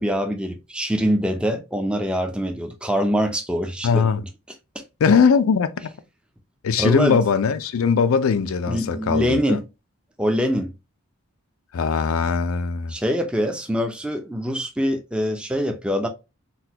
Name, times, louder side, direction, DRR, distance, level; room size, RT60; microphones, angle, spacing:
voice 1, 0.0-4.1 4.8-4.9 6.8-7.2 8.7-9.7 10.2-10.7 12.9-16.1, equal, 5° right, 0.4 m, -24 dB
voice 2, 3.8-4.2 5.0-5.9 6.6-9.6 11.7-12.9, left 5 dB, 80° left, 0.4 m, -20 dB
3.9 x 2.3 x 2.7 m
head